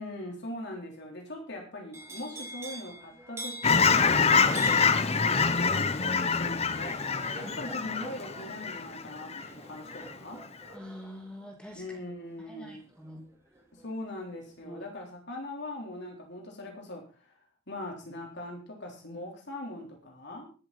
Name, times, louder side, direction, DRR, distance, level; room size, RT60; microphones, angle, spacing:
voice 1, 0.0-10.4 11.7-12.8 13.8-17.3 17.7-20.5, left 1 dB, 60° left, 1 dB, 3.7 m, -41 dB
sound 1, 1.9-13.9 14.2-14.7, right 1 dB, 15° right, 3.3 m, -47 dB
Fowl / Chirp tweet, 3.6-9.5 9.9-10.1, left 5 dB, 30° left, 0.9 m, -25 dB
voice 2, 10.7-11.8 12.5-13.2 14.6-14.8, equal, 5° left, 2 dB, 2.4 m, -45 dB
20.5 x 7.9 x 4.1 m, 0.37 s
head